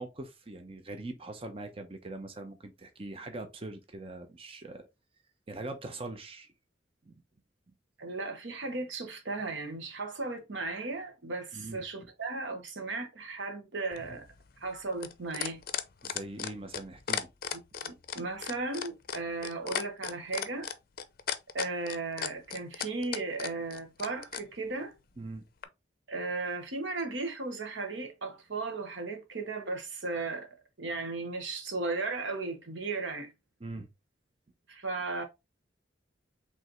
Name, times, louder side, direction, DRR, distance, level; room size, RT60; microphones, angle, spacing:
voice 1, 0.0-4.9 5.5-6.5 7.0-7.1 11.5-11.8 16.0-17.3 25.2-25.4 33.6-33.9, right 2 dB, 30° right, 0.7 m, -42 dB
voice 2, 8.0-14.3 14.6-15.6 17.8-20.7 21.5-24.9 26.1-30.5 30.8-33.3 34.7-35.2, right 3 dB, 90° right, 1.2 m, -36 dB
sound 1, 13.9-24.4 25.6-25.7, left 8 dB, 50° left, 0.5 m, -35 dB
5.2 x 3.4 x 3.0 m
head